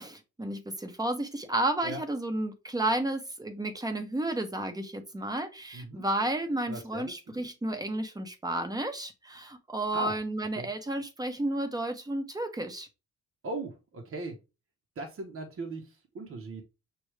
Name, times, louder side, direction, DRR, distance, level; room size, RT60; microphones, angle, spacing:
voice 1, 0.0-12.9, right 1 dB, 10° right, 7 dB, 1.0 m, -32 dB
voice 2, 5.7-6.0 6.7-7.5 9.9-10.2 10.6-10.7 13.4-14.4 15.0-16.6, right 2 dB, 45° right, 2 dB, 1.1 m, -38 dB
6.3 x 2.6 x 3.3 m, 0.28 s
cardioid pair, 90°, 30 cm